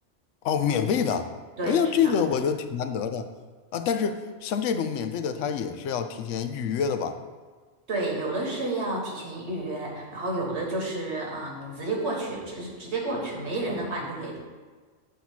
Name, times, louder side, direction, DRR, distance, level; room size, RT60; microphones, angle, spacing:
voice 1, 0.4-1.3 1.7-3.3 3.7-7.2, left 7 dB, 85° left, 8 dB, 0.9 m, -26 dB
voice 2, 7.9-14.4, right 2 dB, 65° right, -2 dB, 1.7 m, -30 dB
8.4 x 2.8 x 5.9 m, 1.4 s
omnidirectional pair, 1.2 m